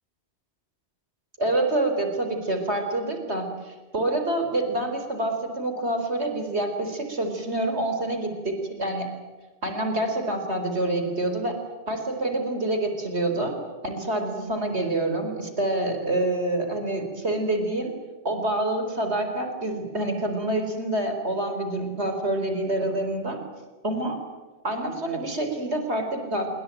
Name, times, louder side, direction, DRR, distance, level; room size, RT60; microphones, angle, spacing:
voice 1, 1.4-9.1 9.6-11.6 11.9-13.5 13.8-17.9 18.2-23.4 23.8-24.2 24.6-26.5, right 1 dB, 80° right, 5 dB, 4.7 m, -27 dB
26.5 x 24.5 x 9.1 m, 1.3 s
omnidirectional pair, 1.1 m